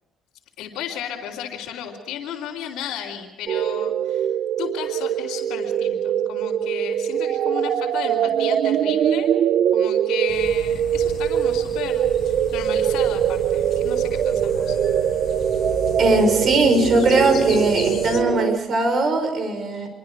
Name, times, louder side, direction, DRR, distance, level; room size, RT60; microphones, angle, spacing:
voice 1, 0.6-4.3 4.6-9.3 9.7-14.8, left 9 dB, 85° left, -5 dB, 3.2 m, -34 dB
sound 1, 3.5-18.6, right 10 dB, 70° right, 0.7 m, -22 dB
sound 2, 10.3-18.2, left 4 dB, 45° left, 7.0 m, -35 dB
voice 2, 16.0-19.9, right 2 dB, 50° right, 6 dB, 5.7 m, -20 dB
27.5 x 23.5 x 4.8 m, 1.2 s
cardioid pair, 120°, 0 cm